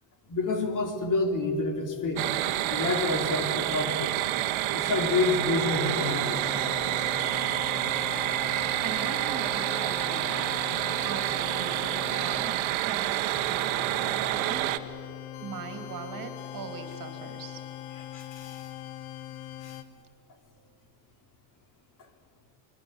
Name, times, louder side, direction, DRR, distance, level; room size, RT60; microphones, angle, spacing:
voice 1, 0.3-2.3 2.6-4.1 4.7-6.4 18.1-18.7 19.6-19.8, left 3 dB, 45° left, 5 dB, 3.6 m, -28 dB
sound 1, 2.2-14.8, right 15 dB, 90° right, 1.5 m, -28 dB
sound 2, 5.6-19.8, left 12 dB, 85° left, 1.7 m, -41 dB
voice 2, 8.8-10.5 11.0-12.5 12.8-14.7 15.4-17.6, right 7 dB, 45° right, 7 dB, 3.1 m, -40 dB
29.0 x 22.0 x 8.1 m, 2.5 s
cardioid pair, 145°, 45 cm